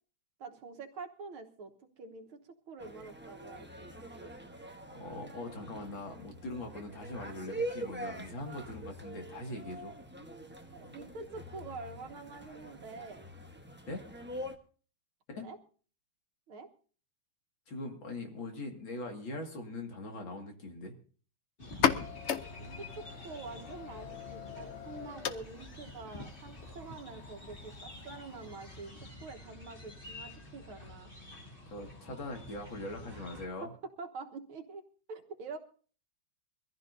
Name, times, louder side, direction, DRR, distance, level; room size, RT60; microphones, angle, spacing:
voice 1, 0.4-1.7 2.0-2.4 2.7-4.3 10.7-13.3 15.4-15.6 16.5-16.7 22.6-31.1 33.1-33.7 34.0-34.8 35.1-35.6, right 4 dB, 90° right, 4 dB, 2.2 m, -46 dB
sound 1, 2.8-14.6, right 1 dB, 10° right, 0.6 m, -44 dB
voice 2, 4.9-9.9 13.9-14.0 15.3-15.5 17.7-20.9 31.7-33.7, left 2 dB, 70° left, 3 dB, 2.9 m, -41 dB
sound 2, 21.6-29.1, left 7 dB, 90° left, 0.6 m, -38 dB
sound 3, 21.6-33.5, left 2 dB, 25° left, 2.4 m, -49 dB
23.5 x 15.0 x 2.7 m, 0.41 s
omnidirectional pair, 2.2 m